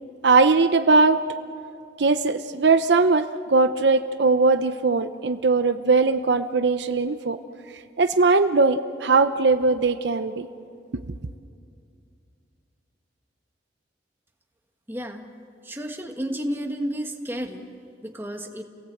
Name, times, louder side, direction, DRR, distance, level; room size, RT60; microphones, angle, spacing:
voice 1, 0.2-1.2 2.0-7.4 8.0-10.5, right 3 dB, 70° right, 10 dB, 0.7 m, -20 dB
voice 2, 14.9-15.2 15.6-17.6 18.0-18.6, equal, 10° right, 3 dB, 1.5 m, -31 dB
29.5 x 18.0 x 7.9 m, 2.4 s
head